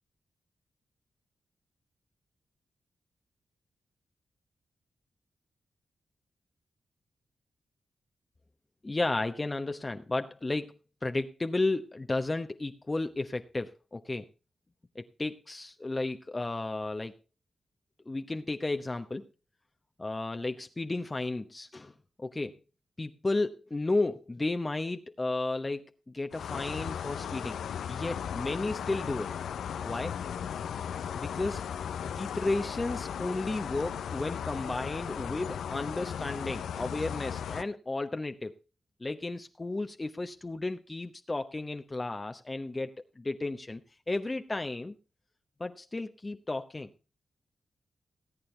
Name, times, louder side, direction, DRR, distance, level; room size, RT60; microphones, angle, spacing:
voice 1, 8.8-14.3 14.9-17.1 18.1-19.3 20.0-21.9 22.2-22.6 23.0-27.6 27.9-29.3 29.8-30.2 31.1-31.6 32.0-38.6 39.0-43.8 44.1-44.9 45.6-46.9, left 2 dB, 30° left, 7 dB, 1.0 m, -33 dB
sound 1, 26.3-37.6, left 8 dB, 85° left, 0.6 m, -36 dB
18.5 x 8.7 x 3.3 m, 0.31 s
supercardioid pair, 45°, 0 cm